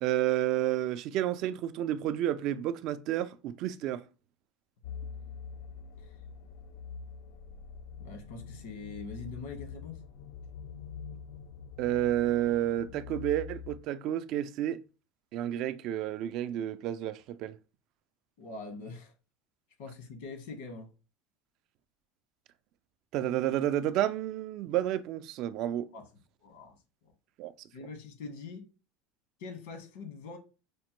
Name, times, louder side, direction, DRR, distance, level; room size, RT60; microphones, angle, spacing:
voice 1, 0.0-4.0 11.8-14.8 15.3-17.5 23.1-25.9 27.4-27.5, right 12 dB, 50° right, 0.3 m, -30 dB
sound 1, 4.8-13.8, left 6 dB, 65° left, 0.4 m, -45 dB
voice 2, 8.0-10.0 18.4-19.1 19.8-20.9 25.9-26.0 26.4-26.8 27.7-28.7 29.4-30.4, left 4 dB, 80° left, 1.2 m, -43 dB
5.0 x 2.2 x 2.9 m
supercardioid pair, 145°, 0 cm